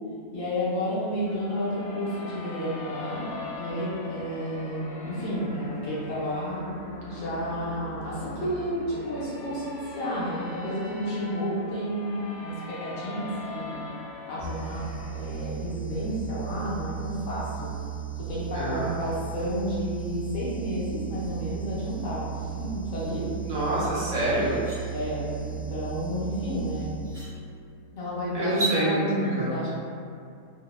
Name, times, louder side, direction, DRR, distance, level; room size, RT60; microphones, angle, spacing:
voice 1, 0.3-3.3 3.5-6.7 7.1-13.8 14.3-14.8 15.1-17.7 18.3-23.3 24.9-26.9 27.9-29.7, equal, 70° left, -8 dB, 0.9 m, -31 dB
sound 1, 1.3-15.2, left 2 dB, 90° left, 1.1 m, -41 dB
sound 2, 14.4-27.5, right 10 dB, 45° left, 0.9 m, -36 dB
voice 2, 18.5-18.9 23.4-24.5 28.3-29.0 29.4-29.5, right 1 dB, 65° right, -9 dB, 0.9 m, -27 dB
sound 3, 23.8-23.9 24.3-24.8 26.4-26.5 27.0-27.3 28.4-28.8, right 2 dB, 45° right, 0.7 m, -32 dB
2.8 x 2.0 x 2.2 m, 2.3 s
omnidirectional pair, 1.6 m